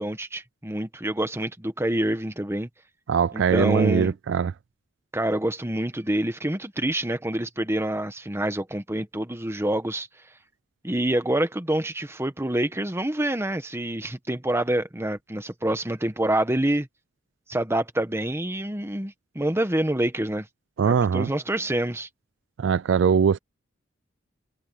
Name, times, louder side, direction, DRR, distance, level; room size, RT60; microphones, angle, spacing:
voice 1, 0.0-2.7 3.3-4.1 5.1-10.1 10.8-16.9 17.5-20.5 20.8-22.1, right 1 dB, 15° right, 1.3 m, -27 dB
voice 2, 3.1-4.5 20.8-21.3 22.6-23.4, right 6 dB, 70° right, 0.4 m, -21 dB
head